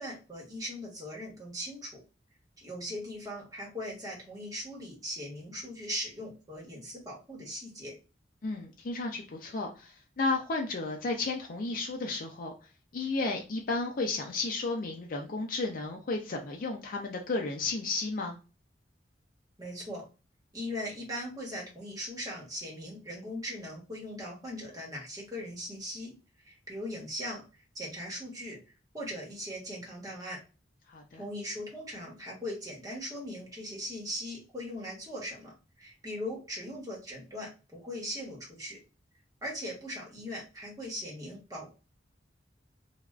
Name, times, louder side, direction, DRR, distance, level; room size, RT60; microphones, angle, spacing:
voice 1, 0.0-2.0 2.6-7.9 19.6-20.1 20.5-26.1 26.4-27.4 27.7-28.6 28.9-30.4 31.2-35.5 35.8-38.8 39.4-41.7, equal, 20° right, -3 dB, 1.1 m, -39 dB
voice 2, 8.4-12.5 12.9-18.4 30.9-31.2, left 3 dB, 50° left, 1 dB, 0.4 m, -33 dB
3.3 x 2.3 x 2.4 m, 0.32 s
head